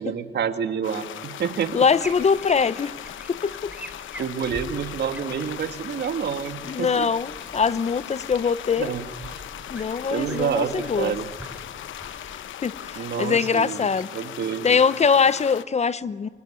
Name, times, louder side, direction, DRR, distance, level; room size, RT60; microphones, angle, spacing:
voice 1, 0.0-1.9 4.2-7.1 8.8-9.1 10.1-11.3 12.9-14.8, right 7 dB, 60° right, 8 dB, 2.0 m, -28 dB
sound 1, 0.8-15.6, left 11 dB, 75° left, 1.0 m, -38 dB
sound 2, 1.5-13.4, right 1 dB, 5° right, 3.7 m, -45 dB
voice 2, 1.7-2.9 3.3-3.7 6.7-8.9 9.7-11.2 12.6-14.1 14.6-16.3, left 5 dB, 35° left, 17 dB, 0.7 m, -22 dB
24.0 x 24.0 x 9.9 m, 1.5 s
cardioid pair, 90°, 20 cm